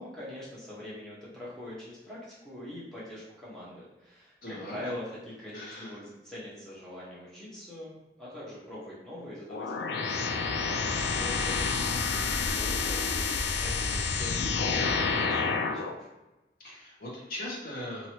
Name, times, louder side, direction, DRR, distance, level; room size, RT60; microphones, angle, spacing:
voice 1, 0.0-5.1 5.4-13.2 13.6-16.1, left 1 dB, 5° left, -9 dB, 1.0 m, -43 dB
voice 2, 4.4-4.9 5.5-6.0 10.6-11.1 16.6-18.1, left 1 dB, 55° left, -4 dB, 0.9 m, -40 dB
sound 1, 9.5-15.9, left 4 dB, 80° left, 0.3 m, -29 dB
2.9 x 2.6 x 2.9 m, 1.0 s
head